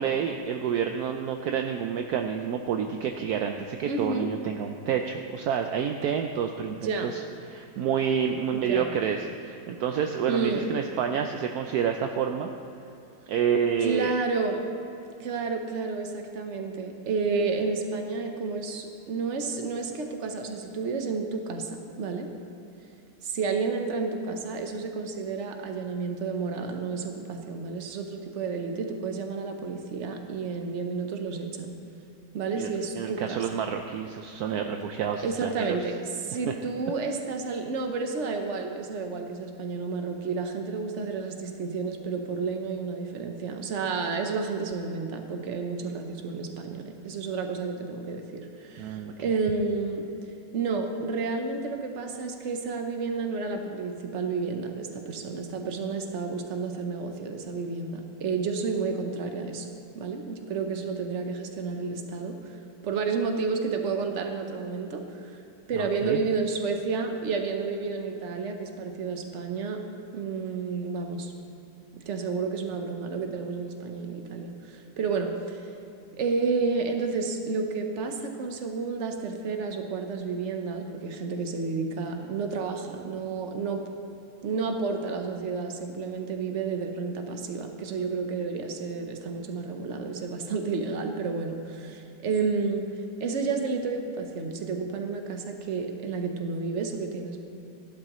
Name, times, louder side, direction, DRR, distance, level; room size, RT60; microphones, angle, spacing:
voice 1, 0.0-7.2 7.5-12.5 13.3-14.1 32.5-32.7 32.9-35.8 48.8-49.1 65.8-66.2, right 7 dB, 70° right, 5 dB, 1.0 m, -29 dB
voice 2, 3.8-4.3 6.8-7.1 8.5-9.0 10.2-10.7 13.8-14.6 15.2-22.3 23.2-31.7 32.3-33.4 35.2-36.0 36.2-50.1 50.5-59.7 59.9-62.5 62.8-65.3 65.7-69.8 70.1-71.3 72.1-75.7 76.2-83.8 84.4-92.9 93.2-97.4, right 4 dB, 50° right, 4 dB, 1.2 m, -31 dB
15.5 x 11.5 x 3.1 m, 2.8 s
omnidirectional pair, 1.8 m